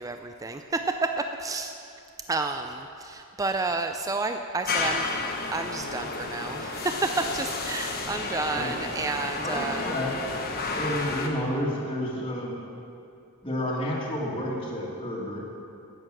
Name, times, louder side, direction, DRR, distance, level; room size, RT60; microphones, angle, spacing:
voice 1, 0.0-1.7 2.3-5.1 5.5-9.9, right 3 dB, 15° right, 6 dB, 0.4 m, -30 dB
sound 1, 4.7-11.3, left 3 dB, 45° left, 1.2 m, -32 dB
voice 2, 9.4-10.4 10.6-12.6 13.4-15.4, left 1 dB, 25° left, -6 dB, 2.1 m, -30 dB
10.5 x 9.0 x 7.5 m, 2.6 s
head